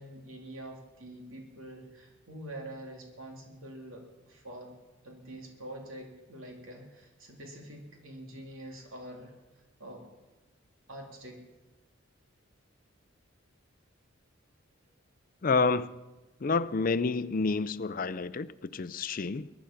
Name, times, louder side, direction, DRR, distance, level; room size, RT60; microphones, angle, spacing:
voice 1, 0.0-4.7 5.0-10.0 10.9-11.4, right 1 dB, 85° right, 2.8 m, -46 dB
voice 2, 15.4-16.0 16.4-19.5, left 4 dB, 40° left, 0.5 m, -29 dB
22.5 x 10.0 x 5.8 m
head